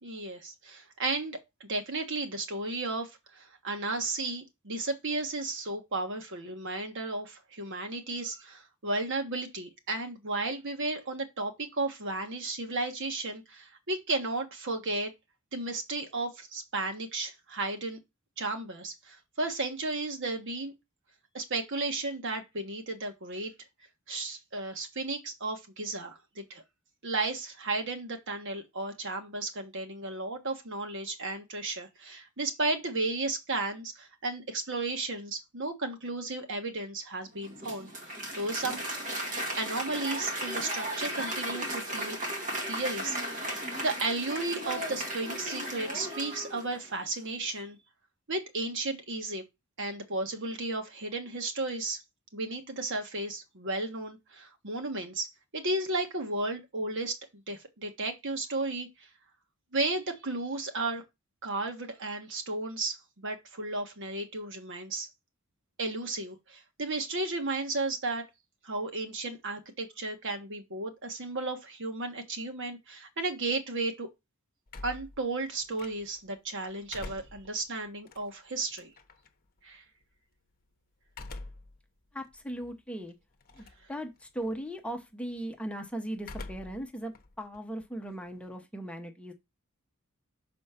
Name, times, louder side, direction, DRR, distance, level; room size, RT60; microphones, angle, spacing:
voice 1, 0.0-15.1 15.5-18.0 18.4-20.7 21.3-23.5 24.1-26.6 27.0-37.9 38.3-38.8 39.2-42.2 42.7-43.5 43.8-47.8 48.3-49.4 49.8-52.0 52.3-55.3 55.5-58.9 59.7-61.0 61.4-65.1 65.8-68.2 68.6-74.1 74.8-78.9 79.6-79.8, right 2 dB, 60° right, 1.5 m, -34 dB
Applause, 37.4-47.0, right 1 dB, 35° right, 1.9 m, -35 dB
sound 1, 74.7-76.3 76.7-79.3 81.1-81.8 82.3-82.4 83.4-83.9 84.2-84.6 86.2-86.9 87.1-88.6, left 2 dB, 40° left, 0.9 m, -45 dB
voice 2, 82.1-83.1 83.5-89.3, right 1 dB, 5° left, 1.0 m, -38 dB
6.3 x 4.3 x 5.7 m
head